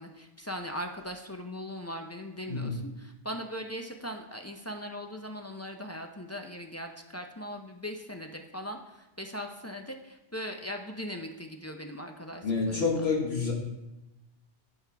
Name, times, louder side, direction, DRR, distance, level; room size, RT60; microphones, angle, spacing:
voice 1, 0.0-12.9, equal, 20° left, 3 dB, 0.4 m, -39 dB
voice 2, 12.4-13.5, left 4 dB, 60° left, -1 dB, 1.7 m, -28 dB
14.5 x 5.5 x 3.4 m, 0.97 s
omnidirectional pair, 1.2 m